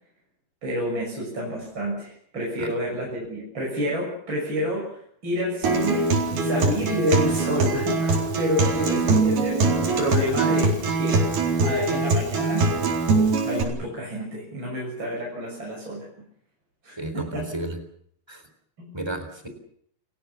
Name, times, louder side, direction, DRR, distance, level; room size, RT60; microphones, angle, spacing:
voice 1, 0.6-9.7 10.0-11.2 11.6-12.7 13.4-16.1 16.8-17.4 18.8-18.9, equal, 30° right, -3 dB, 7.4 m, -29 dB
Acoustic guitar, 5.6-13.6, right 3 dB, 75° right, 6.0 m, -22 dB
voice 2, 17.0-17.8 18.3-18.4 18.9-19.5, right 2 dB, 5° right, 6 dB, 3.5 m, -32 dB
30.0 x 17.5 x 7.3 m, 0.65 s
omnidirectional pair, 4.5 m